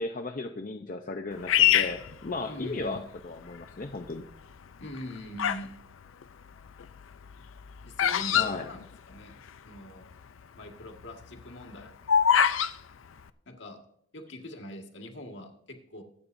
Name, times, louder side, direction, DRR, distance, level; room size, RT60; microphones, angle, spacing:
voice 1, 0.0-3.0 3.2-4.2 8.3-8.7, left 3 dB, 40° left, 4 dB, 0.6 m, -35 dB
Bird vocalization bird call bird song, 1.5-3.0 3.6-4.1 4.8-5.7 6.0-9.5 9.8-9.9 10.0-10.4 10.8-12.7, left 9 dB, 85° left, 0.5 m, -25 dB
voice 2, 2.5-3.0 4.8-5.8 7.8-9.4 9.6-10.1 10.6-11.9 13.5-13.8 14.1-16.0, equal, 70° left, 3 dB, 1.7 m, -42 dB
23.5 x 8.6 x 2.6 m, 0.72 s
head